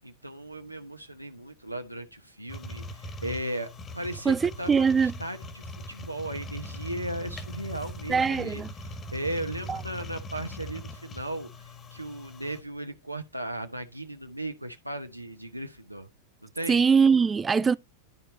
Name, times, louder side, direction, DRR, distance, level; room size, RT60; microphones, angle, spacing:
voice 1, 0.0-16.1 16.4-16.8, right 1 dB, 90° right, 1.0 m, -37 dB
sound 1, 2.5-12.6, equal, 20° left, 1.7 m, -41 dB
voice 2, 4.3-5.1 8.1-8.7 9.7-9.8 16.7-17.7, right 5 dB, 15° right, 0.4 m, -22 dB
12.0 x 4.5 x 4.1 m
figure-of-eight pair, 90°, 0 cm